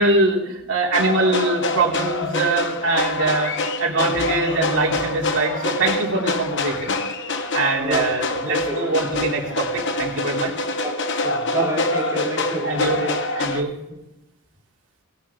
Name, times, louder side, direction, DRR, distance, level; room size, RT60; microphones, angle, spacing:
voice 1, 0.0-3.5 3.8-6.9 7.5-10.5 12.6-13.0 13.3-13.7, right 2 dB, 55° right, -2 dB, 3.1 m, -23 dB
sound 1, 0.9-13.6, left 2 dB, 55° left, 1.1 m, -25 dB
voice 2, 8.4-8.9 10.8-10.9 11.2-13.2 13.5-14.0, right 1 dB, 15° right, -2 dB, 3.1 m, -29 dB
17.5 x 11.5 x 3.6 m, 0.94 s
head